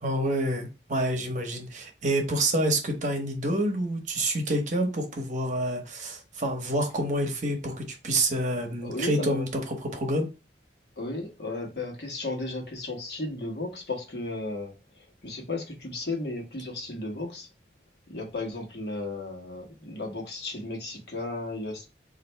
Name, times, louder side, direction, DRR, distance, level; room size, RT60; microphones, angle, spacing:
voice 1, 0.0-10.3, right 1 dB, 45° right, 0.9 m, -28 dB
voice 2, 8.8-9.4 11.0-17.5 18.1-21.9, left 2 dB, 65° left, 1.2 m, -34 dB
3.2 x 2.5 x 4.4 m
head